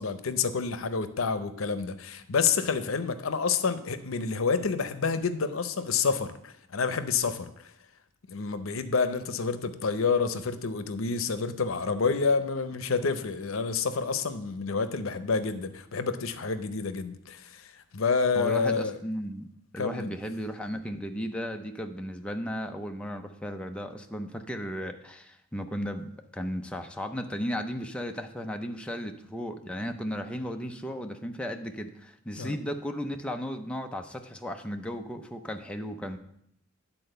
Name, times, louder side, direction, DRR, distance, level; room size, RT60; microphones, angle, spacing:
voice 1, 0.0-7.6 8.3-19.0 19.8-20.1 32.4-32.5, left 5 dB, 85° left, 11 dB, 0.7 m, -28 dB
voice 2, 18.4-19.5 19.7-36.2, equal, 5° left, 4 dB, 0.5 m, -35 dB
10.0 x 4.2 x 6.6 m, 0.73 s
head